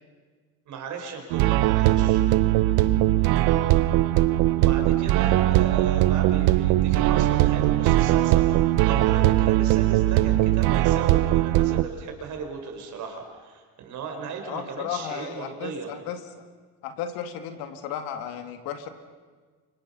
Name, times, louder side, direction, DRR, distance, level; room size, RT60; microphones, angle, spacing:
voice 1, 0.7-2.2 4.6-15.9, right 5 dB, 55° right, 4 dB, 5.1 m, -36 dB
sound 1, 1.3-11.8, right 15 dB, 85° right, 1.0 m, -20 dB
voice 2, 14.5-16.4 16.8-18.9, left 8 dB, 85° left, 6 dB, 2.7 m, -34 dB
30.0 x 26.0 x 5.8 m, 1.5 s
cardioid pair, 150°, 35 cm